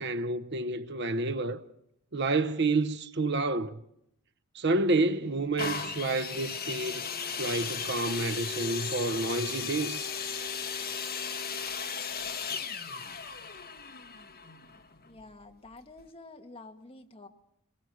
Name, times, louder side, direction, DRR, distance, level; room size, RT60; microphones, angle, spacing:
voice 1, 0.0-1.6 2.1-3.8 4.5-7.1 7.4-10.1, right 2 dB, 50° right, 0.8 m, -29 dB
sound 1, 5.6-15.3 16.0-16.1, left 6 dB, 45° left, 1.5 m, -36 dB
voice 2, 15.0-17.3, left 2 dB, 25° left, 1.5 m, -49 dB
22.0 x 22.0 x 6.3 m
head